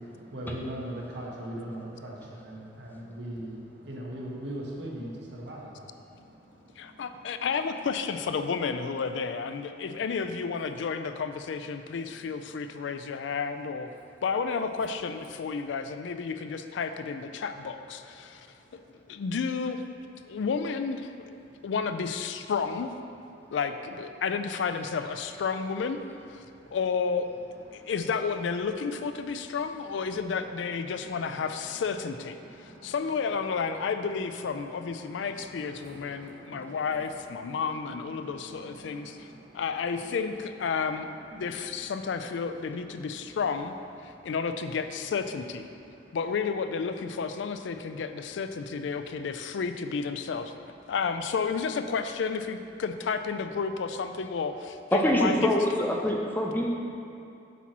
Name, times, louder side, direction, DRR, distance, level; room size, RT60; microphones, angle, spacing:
voice 1, 0.0-7.0 7.3-7.5 18.1-18.8 21.5-21.7 23.3-23.6 26.4-26.8 27.7-27.9 29.3-31.7 32.3-32.9 33.9-34.1 34.3-39.7 40.0-40.2 40.9-42.2 42.8-43.4 44.0-44.3 45.7-46.2, right 1 dB, 70° right, -4 dB, 1.3 m, -43 dB
voice 2, 6.8-13.9 14.2-18.5 19.1-21.3 21.6-22.9 23.5-26.0 26.3-26.4 26.7-27.3 27.7-39.3 39.5-41.1 41.3-43.7 44.0-45.7 46.1-50.5 50.9-55.6, left 5 dB, 80° left, 9 dB, 0.4 m, -31 dB
voice 3, 54.9-56.7, equal, 10° left, -1 dB, 0.5 m, -25 dB
8.1 x 3.0 x 5.9 m, 2.6 s
head